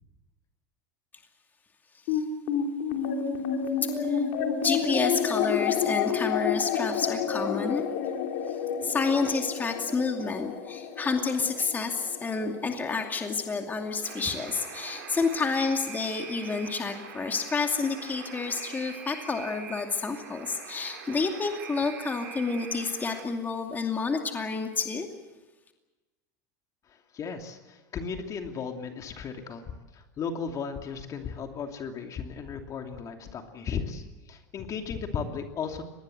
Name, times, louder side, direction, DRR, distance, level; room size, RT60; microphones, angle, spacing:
sound 1, 2.1-14.7, left 7 dB, 70° left, 3.0 m, -30 dB
voice 1, 3.8-4.2 4.6-7.8 8.5-25.1, left 4 dB, 20° left, 4 dB, 2.5 m, -29 dB
Alarm, 14.0-23.2, right 8 dB, 85° right, 3.6 m, -43 dB
voice 2, 26.9-35.8, left 6 dB, 35° left, 4 dB, 2.7 m, -36 dB
24.5 x 20.0 x 7.9 m, 1.2 s
hypercardioid pair, 105°, 9 cm